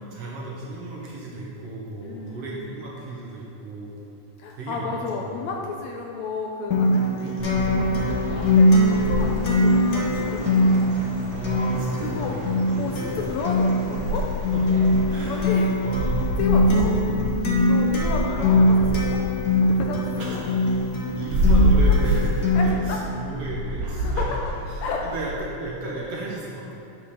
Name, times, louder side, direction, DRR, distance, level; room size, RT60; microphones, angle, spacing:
voice 1, 0.1-4.0 4.5-5.4 7.2-7.8 11.3-12.8 14.5-14.6 15.0-16.2 16.6-17.3 18.3-19.0 20.2-20.8 21.2-24.3 25.0-26.7, right 2 dB, 60° right, -4 dB, 1.8 m, -34 dB
voice 2, 2.0-2.8 4.4-11.0 11.3-11.4 12.0-12.4 12.8-14.3 15.3-15.8 16.2-17.0 17.6-19.2 19.6-20.4 21.8-22.0 22.6-23.0 24.0-24.4 24.8-25.1, left 4 dB, 75° left, 1 dB, 1.8 m, -33 dB
Acoustic guitar, 6.7-22.7, left 1 dB, 60° left, 1.0 m, -22 dB
sound 1, 7.4-25.4, equal, 85° right, 2.4 m, -28 dB
Chirp tweet, 7.8-15.6, right 1 dB, 45° right, 2.0 m, -41 dB
8.6 x 5.5 x 6.4 m, 2.6 s
omnidirectional pair, 3.6 m